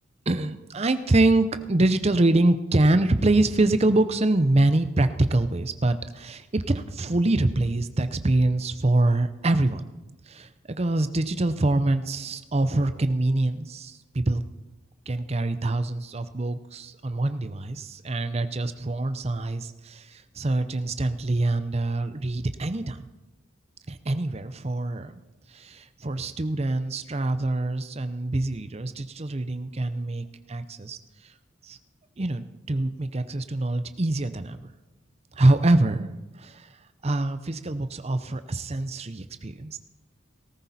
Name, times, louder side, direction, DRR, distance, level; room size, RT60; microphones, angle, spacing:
voice 1, 0.3-9.9 10.3-14.4 15.1-23.1 23.9-25.1 25.5-31.0 31.2-31.3 31.6-31.8 32.2-34.7 35.3-36.1 36.4-36.7 37.0-39.8, right 2 dB, 30° right, 11 dB, 0.7 m, -25 dB
18.5 x 14.0 x 4.2 m, 1.1 s
head